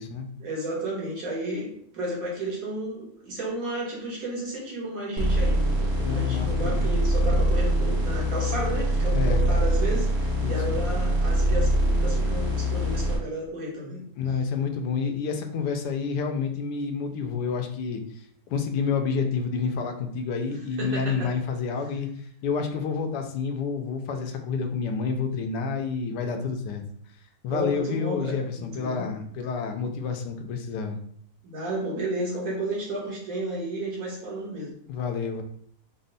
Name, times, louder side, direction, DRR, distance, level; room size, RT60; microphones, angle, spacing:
voice 1, 0.4-14.0 20.8-21.3 27.5-29.1 31.4-34.7, right 1 dB, 60° right, -4 dB, 1.5 m, -32 dB
sound 1, 5.2-13.2, equal, 45° right, 1.2 m, -24 dB
voice 2, 6.0-6.9 9.1-9.4 10.4-10.6 14.2-18.0 18.5-22.1 22.4-26.8 27.4-31.0 34.9-35.4, left 5 dB, 85° left, 5 dB, 1.2 m, -29 dB
4.3 x 2.0 x 3.9 m, 0.63 s
omnidirectional pair, 1.8 m